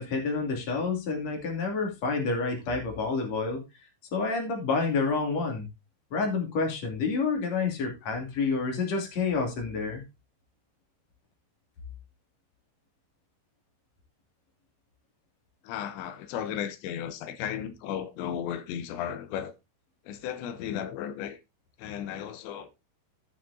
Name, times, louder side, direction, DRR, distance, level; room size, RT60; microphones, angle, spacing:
voice 1, 0.0-3.6 4.1-5.7 6.1-10.0, left 4 dB, 45° left, 3.5 m, -29 dB
voice 2, 15.6-19.5 20.0-21.4 21.8-22.9, left 9 dB, 85° left, 3.2 m, -35 dB
17.0 x 6.3 x 2.7 m
omnidirectional pair, 5.0 m